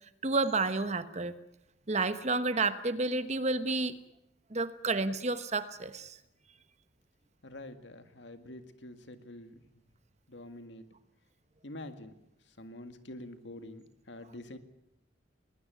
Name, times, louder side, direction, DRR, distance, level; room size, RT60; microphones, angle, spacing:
voice 1, 0.2-1.3 1.9-3.9 4.5-6.2, right 3 dB, 35° right, 12 dB, 1.1 m, -30 dB
voice 2, 7.4-9.6 10.3-10.9 11.6-12.1 12.6-14.6, left 1 dB, 70° left, 8 dB, 2.0 m, -46 dB
21.0 x 19.5 x 9.3 m, 0.83 s
head